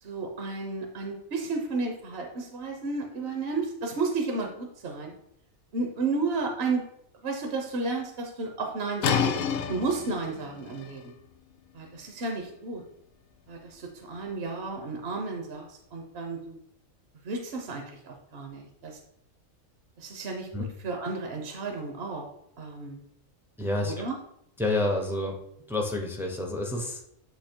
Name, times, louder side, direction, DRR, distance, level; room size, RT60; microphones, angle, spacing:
voice 1, 0.0-5.1 5.7-6.8 7.2-9.4 9.7-11.1 11.7-12.8 13.5-16.6 17.2-19.0 20.0-22.3 22.6-23.0 23.8-24.2, right 3 dB, 55° right, 2 dB, 0.9 m, -32 dB
sound 1, 9.0-14.6, left 7 dB, 80° left, 1.0 m, -33 dB
voice 2, 23.6-24.0 24.6-25.3 25.7-27.0, left 2 dB, 5° right, 1 dB, 0.5 m, -29 dB
7.8 x 2.8 x 4.4 m, 0.76 s
omnidirectional pair, 1.4 m